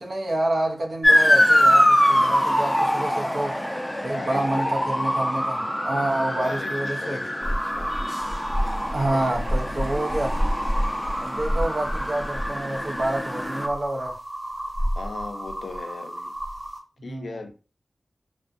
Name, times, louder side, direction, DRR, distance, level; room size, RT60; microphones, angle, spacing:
voice 1, 0.0-3.6 4.0-7.2 8.9-10.4 11.2-14.2 17.0-17.4, right 1 dB, 70° right, 0.5 m, -28 dB
Motor vehicle (road) / Siren, 1.0-13.7, equal, 10° left, 0.4 m, -24 dB
voice 2, 4.1-5.1 5.9-7.9 9.1-9.3 15.0-16.3 17.0-17.5, left 3 dB, 85° left, 0.3 m, -38 dB
sound 1, 7.4-16.8, equal, 35° right, 0.7 m, -29 dB
2.5 x 2.1 x 2.4 m
cardioid pair, 50°, 0 cm